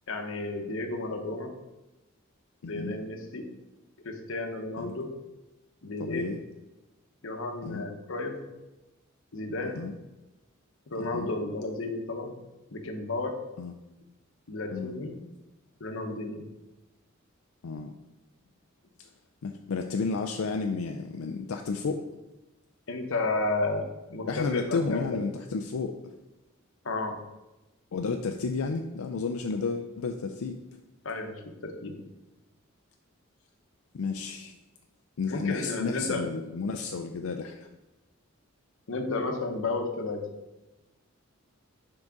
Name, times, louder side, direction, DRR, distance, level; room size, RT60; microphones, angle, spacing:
voice 1, 0.1-1.5 2.7-3.5 4.0-5.1 5.8-6.3 7.2-8.4 9.3-9.8 10.9-12.3 12.7-13.4 14.5-15.2 15.8-16.4 22.9-25.2 26.8-27.2 31.0-32.0 35.3-36.3 38.9-40.3, left 2 dB, 65° left, 4 dB, 0.9 m, -32 dB
voice 2, 2.6-3.0 4.8-5.0 6.0-6.4 7.6-7.9 9.7-9.9 11.0-11.3 13.6-13.7 14.7-15.0 17.6-17.9 19.0-19.1 19.4-22.0 24.3-26.1 27.9-30.6 33.9-34.5 35.2-37.7, left 4 dB, 85° left, 5 dB, 0.4 m, -32 dB
5.9 x 3.9 x 5.1 m, 1.0 s
head